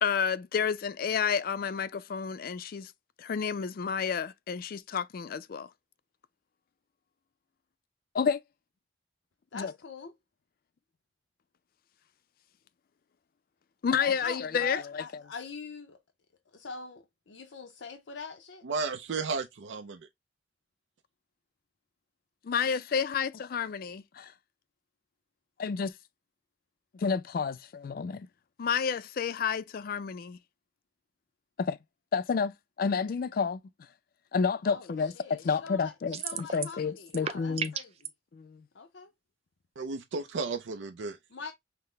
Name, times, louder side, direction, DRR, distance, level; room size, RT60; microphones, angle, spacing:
voice 1, 0.0-2.9 3.2-5.7 8.1-8.4 9.5-9.7 13.8-15.0 22.4-24.3 25.6-25.9 26.9-28.3 28.6-30.4 31.6-31.8 32.1-33.6 34.3-35.1 35.4-37.7 38.3-38.6, left 6 dB, 55° left, 0.4 m, -30 dB
voice 2, 9.5-10.1 14.0-16.0 16.5-18.6 34.6-38.1 38.7-39.1 41.3-41.5, left 4 dB, 90° left, 0.7 m, -43 dB
voice 3, 18.6-20.0 39.8-41.2, right 4 dB, 90° right, 0.5 m, -33 dB
sound 1, 36.1-36.8 37.1-38.1, right 7 dB, 35° right, 0.4 m, -34 dB
5.7 x 2.1 x 3.1 m
head